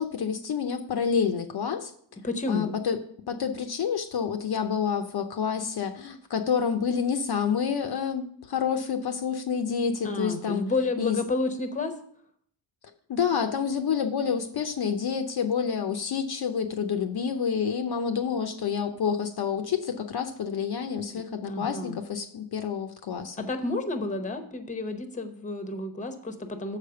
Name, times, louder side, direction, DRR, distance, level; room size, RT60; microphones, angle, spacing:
voice 1, 0.0-1.9 2.5-3.0 3.3-10.6 11.0-11.2 13.1-23.5, left 7 dB, 55° left, 6 dB, 0.7 m, -28 dB
voice 2, 2.2-2.8 10.0-11.9 21.1-21.2 21.5-22.0 23.4-26.8, left 2 dB, 15° left, 7 dB, 0.8 m, -30 dB
7.4 x 5.0 x 6.8 m, 0.65 s
wide cardioid pair, 150°, 47 cm